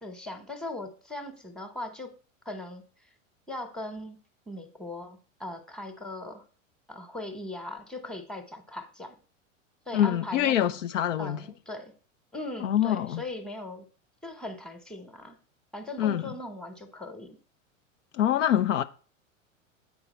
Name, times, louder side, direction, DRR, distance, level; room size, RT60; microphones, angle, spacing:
voice 1, 0.0-2.1 2.4-2.8 3.5-4.2 4.5-6.4 6.9-9.2 9.9-10.8 11.2-11.9 12.3-13.9 14.2-15.4 15.7-17.4, left 2 dB, ahead, 1.1 m, -39 dB
voice 2, 9.9-11.4 12.6-13.2 16.0-16.2 18.1-18.8, left 11 dB, 70° left, 0.6 m, -25 dB
8.2 x 4.6 x 4.3 m
hypercardioid pair, 95°, 39 cm